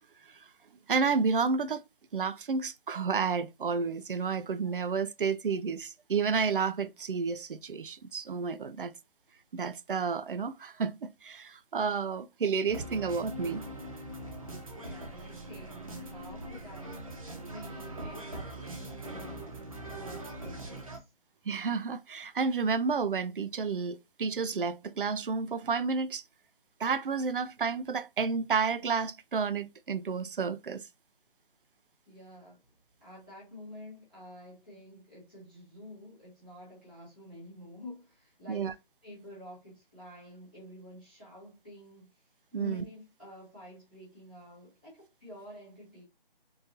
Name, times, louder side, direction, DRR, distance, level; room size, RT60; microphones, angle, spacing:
voice 1, 0.9-1.8 2.1-8.9 9.5-13.6 21.5-26.2 26.8-30.8 38.5-38.7 42.5-42.8, right 5 dB, 65° right, 0.5 m, -31 dB
sound 1, 12.7-21.0, right 1 dB, 35° right, 0.8 m, -42 dB
voice 2, 14.8-21.1 32.1-32.6 33.0-46.0, left 1 dB, 10° left, 0.8 m, -49 dB
3.9 x 2.8 x 2.5 m
hypercardioid pair, 175°, 29 cm